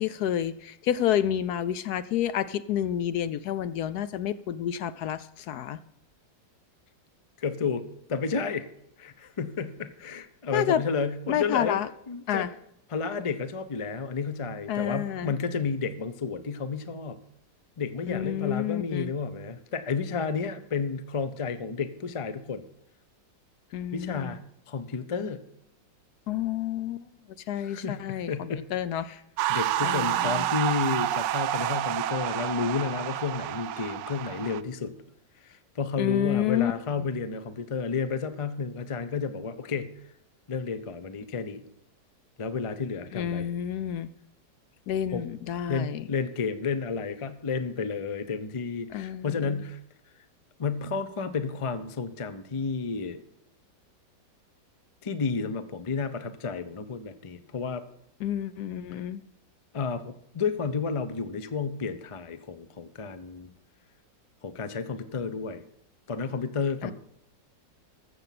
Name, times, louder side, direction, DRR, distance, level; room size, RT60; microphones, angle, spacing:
voice 1, 0.0-5.8 10.5-10.8 11.3-11.9 12.3-12.5 14.7-15.3 18.1-19.1 23.7-24.4 26.3-27.1 27.5-29.1 29.8-30.5 36.0-36.7 43.1-44.1 44.9-46.0 48.9-49.6 58.2-59.2 66.8-66.9, left 10 dB, 70° left, 15 dB, 1.0 m, -29 dB
voice 2, 7.4-8.7 9.0-11.8 12.1-12.5 12.9-17.2 17.8-22.6 23.9-24.4 24.7-25.4 27.6-28.7 29.0-29.2 29.5-34.9 35.4-39.9 40.5-41.6 42.4-43.5 45.1-45.3 45.7-49.8 50.6-53.2 55.0-57.8 59.7-63.5 64.4-65.6 66.1-66.9, left 5 dB, 50° left, 12 dB, 0.3 m, -31 dB
sound 1, 29.4-34.6, right 13 dB, 80° right, 1.2 m, -29 dB
14.5 x 7.1 x 5.9 m, 0.78 s
omnidirectional pair, 1.9 m